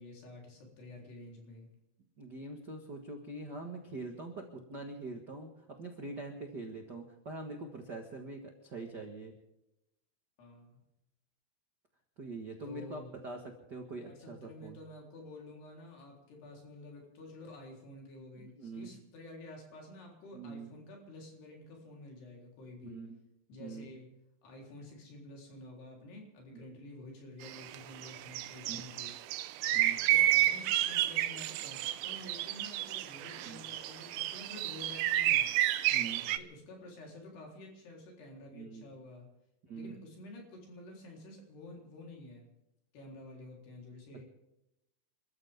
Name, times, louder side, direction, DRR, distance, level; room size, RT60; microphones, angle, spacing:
voice 1, 0.0-1.7 10.4-10.8 12.6-13.1 14.0-23.0 23.5-24.1 24.4-29.1 30.1-35.5 36.3-39.3 39.7-42.5 42.9-44.2, left 2 dB, 80° left, 0 dB, 5.9 m, -50 dB
voice 2, 2.2-9.3 12.2-14.8 18.4-18.9 20.3-20.7 22.8-23.2 23.6-23.8 26.5-26.6 28.7-28.8 29.7-30.0 33.4-33.6 35.9-36.2 38.5-38.9 39.6-39.9, right 3 dB, 60° right, 3 dB, 1.1 m, -44 dB
sound 1, 27.4-27.8 28.0-36.4, right 14 dB, 80° right, 2.5 m, -30 dB
28.5 x 13.5 x 3.6 m, 0.90 s
omnidirectional pair, 4.6 m